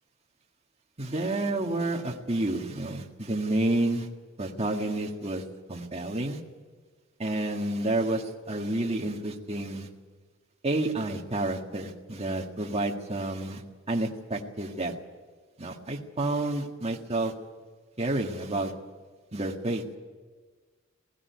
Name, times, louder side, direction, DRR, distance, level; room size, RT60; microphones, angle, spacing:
voice 1, 1.0-4.1 4.4-5.4 5.7-6.4 7.2-9.9 10.6-14.9 15.6-17.3 18.0-18.7 19.3-19.8, right 2 dB, 30° right, 1 dB, 1.7 m, -30 dB
18.5 x 16.0 x 9.5 m, 1.4 s
head